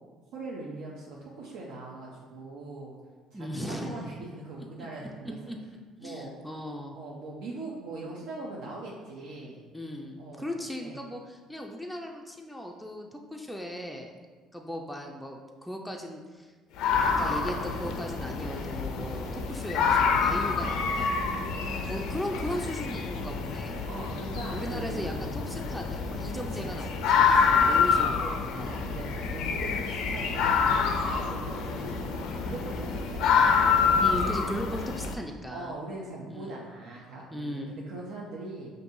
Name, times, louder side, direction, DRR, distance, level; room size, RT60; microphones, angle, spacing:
voice 1, 0.3-3.0 3.3-5.4 6.0-6.3 6.9-9.6 10.2-11.0 21.3-21.7 23.9-25.3 26.5-26.6 27.1-28.3 28.6-33.9 35.5-38.7, right 2 dB, 85° right, -4 dB, 0.5 m, -41 dB
voice 2, 3.3-4.1 5.5-5.6 6.0-7.0 9.7-14.2 14.5-16.5 17.0-21.2 21.9-23.8 24.5-28.7 34.0-35.8 36.3-36.5 37.3-37.7, equal, ahead, 0 dB, 0.3 m, -37 dB
sound 1, 16.8-35.1, left 5 dB, 80° left, 0.4 m, -27 dB
5.3 x 2.6 x 2.6 m, 1.4 s
cardioid pair, 105°, 0 cm